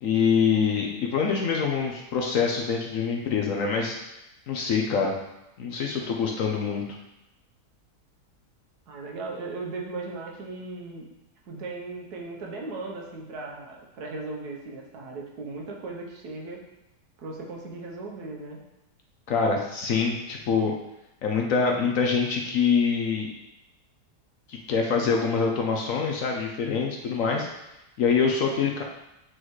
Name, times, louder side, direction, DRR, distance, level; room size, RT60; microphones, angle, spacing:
voice 1, 0.0-4.0 4.5-5.1 5.6-6.8 19.3-20.7 21.2-23.3 24.5-27.5 28.0-28.8, left 5 dB, 60° left, 1 dB, 0.9 m, -25 dB
voice 2, 8.9-11.1 11.5-16.6 17.2-18.6, right 3 dB, 75° right, -1 dB, 1.5 m, -37 dB
7.8 x 3.9 x 3.1 m, 0.90 s
omnidirectional pair, 1.8 m